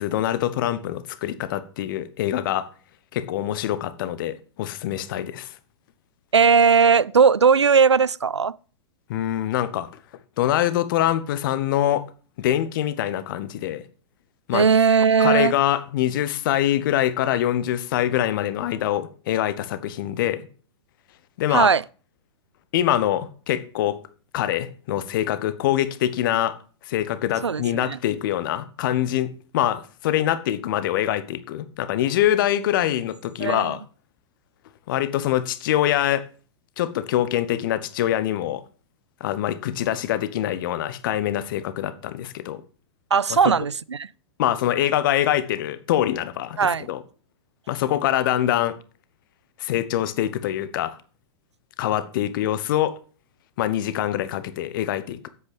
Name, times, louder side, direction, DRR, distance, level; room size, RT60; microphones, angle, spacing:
voice 1, 0.0-2.7 3.1-5.5 9.1-9.9 10.4-12.0 12.4-13.8 14.5-14.7 15.2-20.5 21.4-21.7 22.7-24.0 24.3-26.6 26.9-33.8 34.9-36.2 36.8-38.6 39.2-42.6 43.3-43.4 44.4-47.0 47.7-48.8 49.6-51.0 51.8-53.0 53.6-55.3, left 12 dB, 50° left, 1.1 m, -24 dB
voice 2, 6.3-8.6 14.5-15.5 21.5-21.8 27.4-28.0 33.4-33.7 43.1-44.1 46.6-46.9, right 6 dB, 85° right, 0.4 m, -18 dB
8.4 x 8.0 x 5.4 m
figure-of-eight pair, 100°, 14 cm